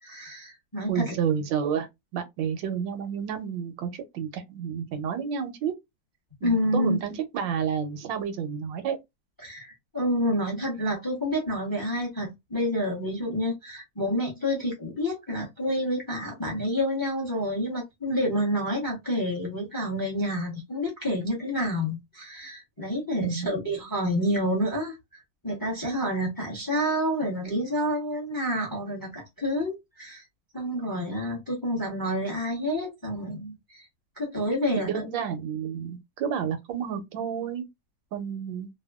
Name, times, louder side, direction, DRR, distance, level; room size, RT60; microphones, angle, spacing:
voice 1, 0.0-1.1 6.4-7.0 9.4-30.2 30.5-33.8 34.2-35.0, equal, 15° left, 0.7 m, -28 dB
voice 2, 0.9-5.7 6.4-9.0 23.2-23.5 34.8-37.6 38.1-38.7, right 7 dB, 85° right, 1.4 m, -30 dB
3.4 x 2.2 x 2.2 m
omnidirectional pair, 2.0 m